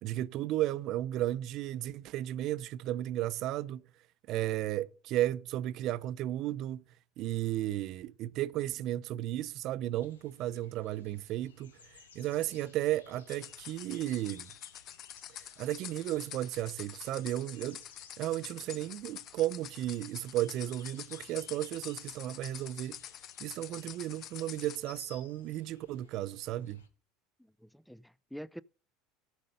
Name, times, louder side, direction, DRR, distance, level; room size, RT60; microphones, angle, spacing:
voice 1, 0.0-3.8 4.3-6.8 7.2-14.5 15.4-17.8 18.2-23.0 23.4-26.8, right 14 dB, 55° right, 0.6 m, -34 dB
sound 1, 9.9-26.9, left 5 dB, 90° left, 1.3 m, -59 dB
sound 2, 13.3-24.8, left 11 dB, 50° left, 0.7 m, -47 dB
voice 2, 27.6-28.6, equal, ahead, 0.4 m, -46 dB
14.5 x 5.3 x 5.2 m
hypercardioid pair, 85°, 0 cm